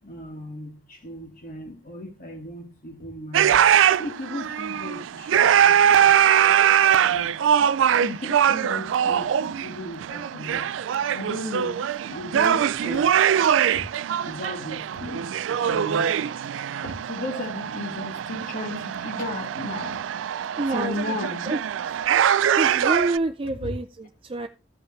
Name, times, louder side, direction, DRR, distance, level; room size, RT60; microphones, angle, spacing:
voice 1, 0.0-3.6 4.0-6.2 7.1-7.3 7.9-10.7 11.1-11.8 12.1-13.1 14.2-15.3 15.6-16.2 16.8-20.0 20.7-21.5 23.6-23.7, left 1 dB, 45° left, 2.7 m, -35 dB
sound 1, 3.3-23.2, right 9 dB, 85° right, 0.3 m, -22 dB
voice 2, 20.6-21.0 21.5-21.6 22.6-24.5, right 2 dB, 30° right, 0.5 m, -27 dB
15.0 x 5.4 x 3.2 m
head